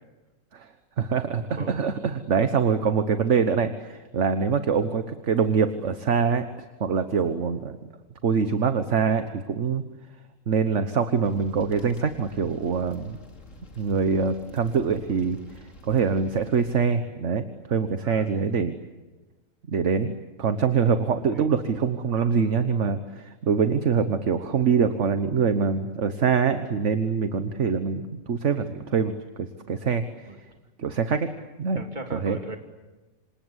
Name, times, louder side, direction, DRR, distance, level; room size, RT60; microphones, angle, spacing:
voice 1, 1.0-1.4 1.7-6.5 6.8-7.8 8.2-9.8 10.5-13.2 13.8-15.4 15.8-17.4 17.7-18.7 19.7-20.1 20.4-30.0 30.8-31.3 31.6-31.8 32.1-32.4, right 6 dB, 45° right, 9 dB, 1.4 m, -24 dB
sound 1, 11.2-16.7, left 1 dB, 45° left, 3.2 m, -49 dB
voice 2, 18.0-18.5 21.3-21.5 30.3-30.4 31.8-32.6, right 1 dB, 25° right, 4 dB, 3.0 m, -38 dB
27.5 x 26.5 x 8.1 m, 1.2 s
omnidirectional pair, 1.9 m